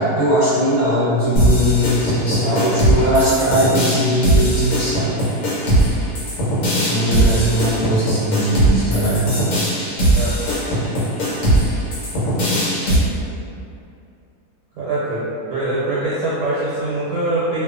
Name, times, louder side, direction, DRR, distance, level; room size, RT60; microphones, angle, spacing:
voice 1, 0.0-5.1 6.9-9.3, equal, 15° right, -15 dB, 0.8 m, -19 dB
sound 1, 1.4-13.0, right 1 dB, 70° left, 1.2 m, -19 dB
voice 2, 14.8-15.2 15.5-17.6, right 2 dB, 85° right, -8 dB, 1.2 m, -23 dB
2.7 x 2.3 x 2.4 m, 2.5 s
omnidirectional pair, 1.7 m